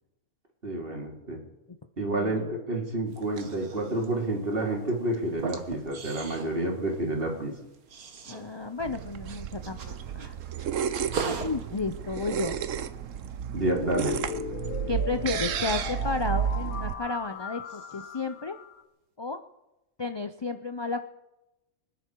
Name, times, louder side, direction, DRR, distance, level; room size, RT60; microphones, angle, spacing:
voice 1, 0.6-1.4 2.0-7.5 13.5-14.2, right 1 dB, 40° right, 0 dB, 3.1 m, -29 dB
voice 2, 2.1-2.5 8.3-10.3 11.3-12.6 14.9-18.6 19.2-19.4 20.0-21.0, left 3 dB, 40° left, 8 dB, 0.3 m, -32 dB
sound 1, 3.1-17.4 17.6-18.3, right 5 dB, 85° right, 1.8 m, -42 dB
sound 2, 8.8-16.9, right 9 dB, 65° right, 1.1 m, -32 dB
Flashback Synth, 13.7-18.8, left 7 dB, 80° left, 1.5 m, -39 dB
25.0 x 10.5 x 4.7 m, 0.95 s
omnidirectional pair, 1.5 m